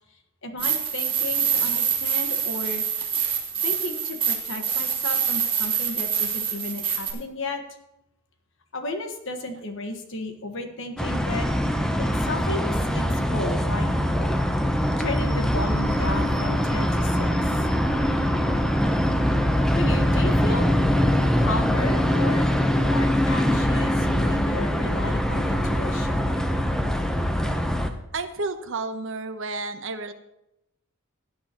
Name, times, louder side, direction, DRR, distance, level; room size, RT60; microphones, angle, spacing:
voice 1, 0.4-2.8 3.6-7.6 8.7-11.5 12.1-13.9 15.0-17.5 19.7-20.7 21.4-22.5 22.8-26.6, left 2 dB, 60° left, 5 dB, 1.4 m, -33 dB
sound 1, 0.6-7.1, right 8 dB, 25° right, 2.0 m, -26 dB
sound 2, 11.0-27.9, equal, 5° left, 0.7 m, -23 dB
voice 2, 28.1-30.1, right 3 dB, 60° right, 8 dB, 0.9 m, -31 dB
17.0 x 9.5 x 2.9 m, 0.87 s
head